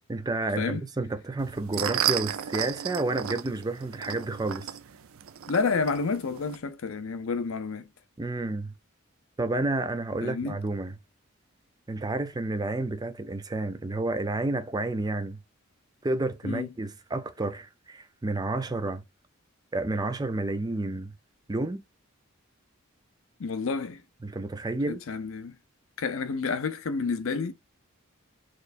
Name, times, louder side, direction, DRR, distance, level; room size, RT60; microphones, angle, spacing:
voice 1, 0.1-4.8 8.2-8.7 9.4-11.0 11.9-15.4 16.0-19.0 19.7-21.1 21.5-21.8 24.2-25.0, right 2 dB, 20° right, 0.4 m, -30 dB
sound 1, 1.4-6.6, right 10 dB, 75° right, 0.4 m, -33 dB
voice 2, 5.5-7.9 10.2-10.6 16.4-16.7 23.4-24.0 24.9-25.6 26.0-27.5, left 4 dB, 70° left, 0.6 m, -29 dB
4.3 x 3.0 x 2.5 m
head